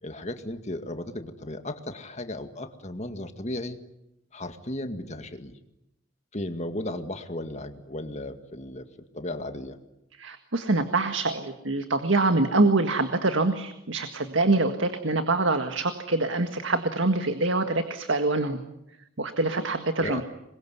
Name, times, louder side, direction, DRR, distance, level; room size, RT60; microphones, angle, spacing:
voice 1, 0.0-3.8 4.3-5.5 6.3-8.8 9.1-9.8 20.0-20.2, left 1 dB, 35° left, 8 dB, 2.1 m, -35 dB
voice 2, 10.2-18.6 19.2-20.2, right 2 dB, 80° right, 7 dB, 1.8 m, -25 dB
27.0 x 22.5 x 9.6 m, 0.85 s
head